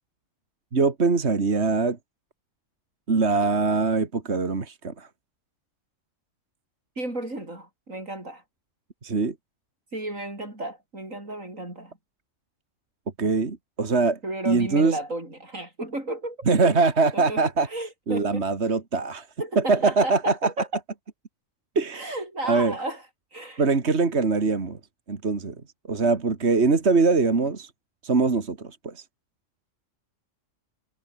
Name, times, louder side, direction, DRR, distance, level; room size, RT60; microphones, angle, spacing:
voice 1, 0.7-2.0 3.1-5.1 9.0-9.3 13.2-14.2 14.5-15.0 16.5-17.7 18.1-19.3 19.6-20.5 21.8-22.2 22.4-22.7 23.6-24.8 25.1-25.6 25.9-27.7 28.0-29.0, right 4 dB, 55° right, 2.4 m, -22 dB
voice 2, 7.0-8.4 9.9-12.0 14.2-16.5 17.1-17.4 17.7-18.4 19.4-20.7 21.9-23.0 23.3-23.6, right 1 dB, 90° right, 7.9 m, -33 dB
omnidirectional pair, 1.3 m